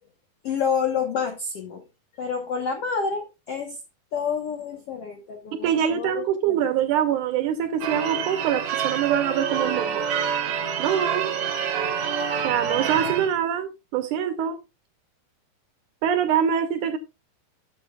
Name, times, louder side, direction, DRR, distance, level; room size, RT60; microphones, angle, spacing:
voice 1, 0.4-1.8 2.2-3.8 4.1-6.6, left 6 dB, 80° left, 1.3 m, -28 dB
voice 2, 5.6-10.1 10.8-11.3 12.4-14.6 16.0-17.0, right 9 dB, 80° right, 1.9 m, -24 dB
Church bell / Car / Alarm, 7.8-13.4, right 7 dB, 60° right, 1.6 m, -27 dB
13.5 x 7.0 x 2.3 m
omnidirectional pair, 4.2 m